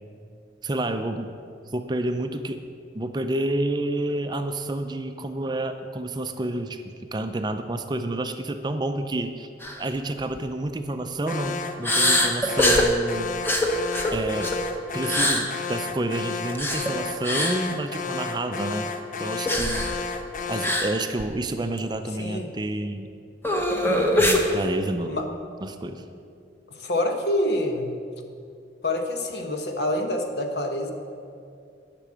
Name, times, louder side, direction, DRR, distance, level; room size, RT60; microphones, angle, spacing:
voice 1, 0.6-1.3 1.7-2.6 2.9-9.5 9.8-13.3 14.1-14.5 14.9-18.9 19.2-20.2 20.5-23.1 24.2-25.2 25.6-26.0, right 1 dB, 25° right, 7 dB, 0.5 m, -29 dB
sound 1, 9.6-9.8 10.2-10.4 11.8-12.9 13.4-14.6 15.0-15.4 16.5-16.9 17.2-17.6 19.5-20.0 20.6-20.9 21.2-21.3 21.8-21.9 23.4-24.4, left 1 dB, 10° left, 0.9 m, -22 dB
Alarm, 11.3-20.9, left 4 dB, 45° left, 0.6 m, -32 dB
voice 2, 22.2-22.5 25.0-25.3 26.7-28.0 28.8-30.9, left 1 dB, 65° left, 4 dB, 1.1 m, -26 dB
10.0 x 6.0 x 8.5 m, 2.4 s
head